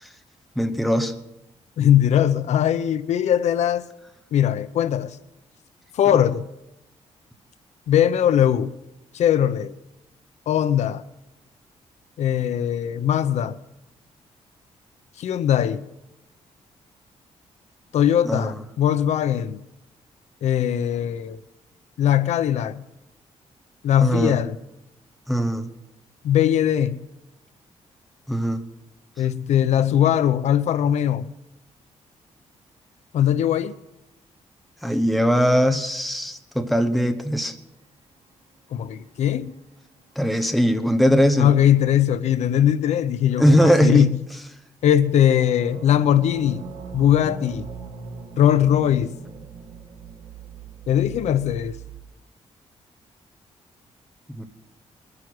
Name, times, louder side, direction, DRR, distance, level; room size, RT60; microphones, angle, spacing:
voice 1, 0.6-1.1 18.2-18.6 24.0-24.3 25.3-25.7 28.3-28.6 34.8-37.5 40.2-41.5 43.4-44.1 54.4-54.5, equal, ahead, 0.9 m, -20 dB
voice 2, 1.8-3.8 4.3-5.2 5.9-6.4 7.9-8.7 9.1-9.7 10.5-11.0 12.2-13.5 15.2-15.8 17.9-19.6 20.4-21.4 22.0-22.8 23.8-24.6 26.2-27.0 29.2-31.2 33.1-33.8 38.7-39.5 41.4-44.2 44.8-46.6 46.9-47.7 48.4-49.1 50.9-51.8, left 10 dB, 75° left, 0.7 m, -20 dB
sound 1, 38.6-39.9 45.0-52.0, right 5 dB, 65° right, 1.9 m, -40 dB
21.0 x 9.9 x 6.1 m
wide cardioid pair, 165°, 12 cm